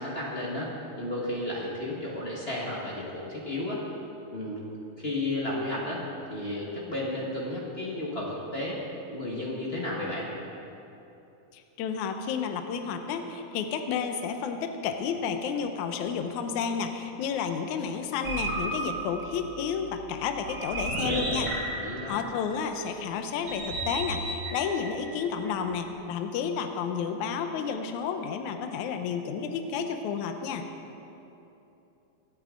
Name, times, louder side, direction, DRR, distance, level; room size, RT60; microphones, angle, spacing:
voice 1, 0.0-3.8 4.3-4.6 5.0-6.0 6.3-8.8 9.1-10.3 21.8-22.2, left 1 dB, 45° left, -5 dB, 0.7 m, -33 dB
voice 2, 11.5-21.5 22.1-30.6, left 6 dB, 75° left, 6 dB, 2.0 m, -31 dB
sound 1, 18.2-22.6 23.5-25.9, right 2 dB, 50° right, 1.1 m, -34 dB
25.0 x 8.7 x 3.8 m, 2.9 s
omnidirectional pair, 3.8 m